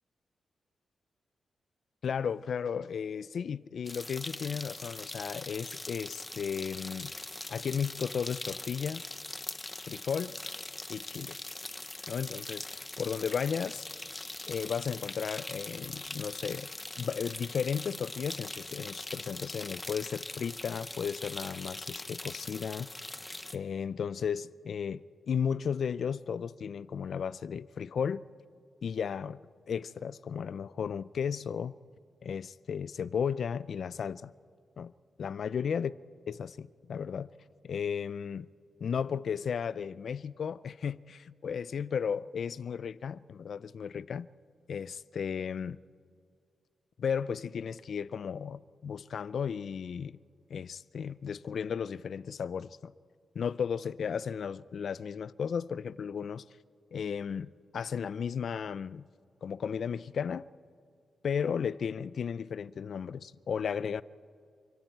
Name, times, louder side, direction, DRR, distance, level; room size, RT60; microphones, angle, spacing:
voice 1, 2.0-7.1 7.5-9.0 9.8-10.4 10.9-11.4 12.1-13.9 14.5-16.7 17.0-22.9 23.5-28.2 28.8-29.4 29.7-31.8 32.2-34.3 34.8-34.9 35.2-35.9 36.3-37.3 37.6-38.5 38.8-44.3 44.7-45.8 47.0-50.2 50.5-52.9 53.4-56.5 56.9-59.1 59.4-60.5 61.2-64.0, left 7 dB, 65° left, 0.4 m, -34 dB
sound 1, 3.9-23.6, left 2 dB, 15° left, 0.7 m, -42 dB
29.0 x 25.0 x 4.6 m
wide cardioid pair, 125°, 0 cm